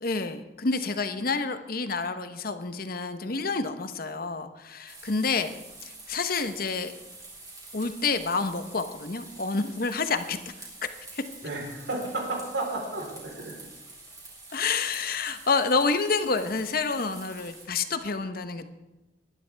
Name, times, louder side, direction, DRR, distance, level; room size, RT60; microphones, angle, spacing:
voice 1, 0.0-5.5 5.8-6.9 7.7-10.9 11.1-11.2 14.5-18.7, left 4 dB, 50° left, 9 dB, 1.0 m, -28 dB
sound 1, 4.9-17.7, right 2 dB, 20° right, 4.5 m, -47 dB
voice 2, 11.4-13.6, right 2 dB, 90° right, -1 dB, 3.9 m, -32 dB
21.0 x 11.0 x 3.4 m, 1.1 s
head